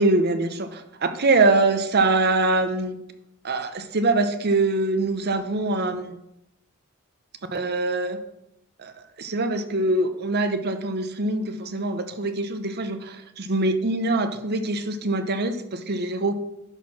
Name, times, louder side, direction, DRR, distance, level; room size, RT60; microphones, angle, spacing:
voice 1, 0.0-3.0 3.4-6.2 7.5-8.2 8.8-8.9 9.2-16.3, right 2 dB, 45° right, 9 dB, 0.8 m, -23 dB
11.0 x 4.3 x 6.0 m, 0.85 s
head